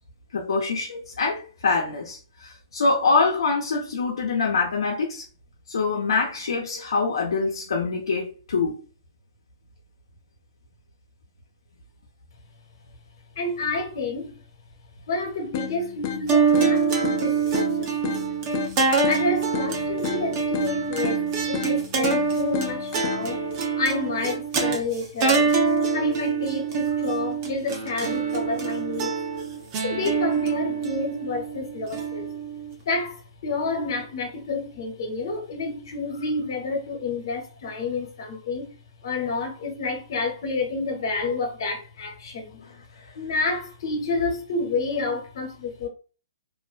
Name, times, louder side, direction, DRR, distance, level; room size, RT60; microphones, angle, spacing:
voice 1, 0.3-5.2 5.7-8.7, left 4 dB, 85° left, 0.6 m, -24 dB
voice 2, 13.4-14.4 15.1-17.5 17.8-18.2 19.0-21.2 21.5-23.4 23.8-25.5 25.9-29.1 29.8-32.3 32.8-38.7 39.0-42.6 43.1-45.9, left 3 dB, 60° left, 0.9 m, -29 dB
sound 1, 15.5-23.5, left 9 dB, 35° left, 0.4 m, -34 dB
sound 2, 16.3-32.7, right 5 dB, 35° right, 0.6 m, -25 dB
2.4 x 2.1 x 2.4 m
hypercardioid pair, 150°, 3 cm